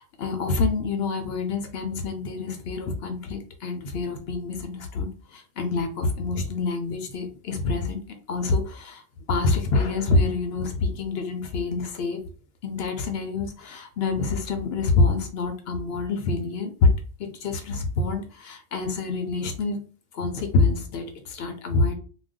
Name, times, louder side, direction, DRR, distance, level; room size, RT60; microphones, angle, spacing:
voice 1, 0.0-8.0 8.3-9.0 9.3-12.2 12.6-16.9 17.2-19.8 20.1-21.9, left 3 dB, 65° left, 6 dB, 0.7 m, -26 dB
2.5 x 2.2 x 3.5 m, 0.38 s
omnidirectional pair, 1.2 m